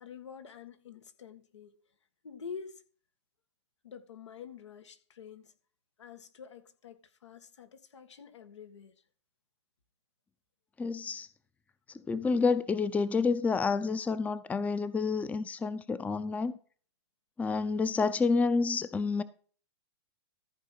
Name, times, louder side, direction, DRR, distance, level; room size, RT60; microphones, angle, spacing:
voice 1, 0.0-1.7 2.2-2.8 3.8-5.5 6.0-8.9, left 6 dB, 90° left, 1.6 m, -47 dB
voice 2, 10.8-11.3 12.1-16.5 17.4-19.2, left 4 dB, 10° left, 0.6 m, -29 dB
14.0 x 4.8 x 5.7 m
hypercardioid pair, 125°, 15 cm